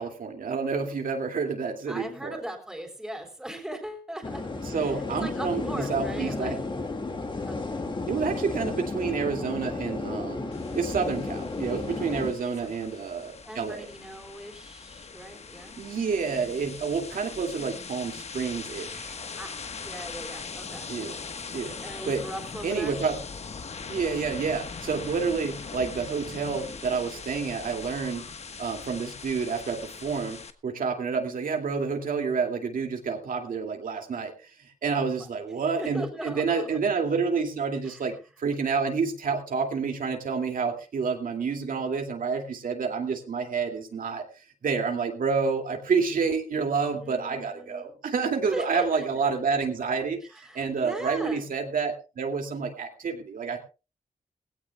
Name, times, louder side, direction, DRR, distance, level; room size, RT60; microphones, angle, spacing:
voice 1, 0.0-2.4 4.7-6.6 8.1-13.9 15.8-19.1 20.9-21.2 21.5-21.8 22.1-22.2 22.6-23.2 23.9-28.3 28.6-34.5 34.8-44.2 44.6-50.2 50.5-53.6, right 5 dB, 75° right, 3 dB, 2.4 m, -29 dB
voice 2, 1.9-6.6 7.4-7.6 12.6-12.7 13.5-15.8 17.1-17.3 19.4-20.9 21.3-21.5 21.8-23.0 34.9-35.3 35.8-36.8 37.8-38.0 46.9-48.0 48.5-49.1 50.3-51.5, right 1 dB, 5° right, 3 dB, 3.6 m, -39 dB
sound 1, 4.2-12.3, left 3 dB, 35° left, 2.1 m, -33 dB
sound 2, 10.5-30.5, left 5 dB, 50° left, 1.3 m, -41 dB
20.0 x 16.5 x 2.3 m, 0.31 s
wide cardioid pair, 150°, 14 cm